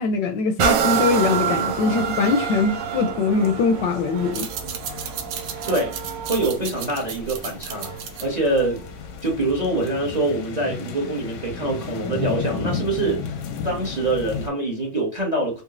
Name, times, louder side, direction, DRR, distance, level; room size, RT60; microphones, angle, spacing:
voice 1, 0.0-4.5, left 4 dB, 75° left, 1.1 m, -22 dB
sound 1, 0.6-8.2 8.8-8.9, right 7 dB, 70° right, 1.2 m, -27 dB
sound 2, 0.8-14.5, left 5 dB, 90° left, 1.6 m, -35 dB
sound 3, 4.2-9.4, right 8 dB, 85° right, 1.5 m, -35 dB
voice 2, 5.7-6.0 6.3-7.9 8.2-8.8 9.2-15.6, right 2 dB, 30° right, 0.8 m, -24 dB
4.0 x 3.4 x 2.5 m
omnidirectional pair, 2.2 m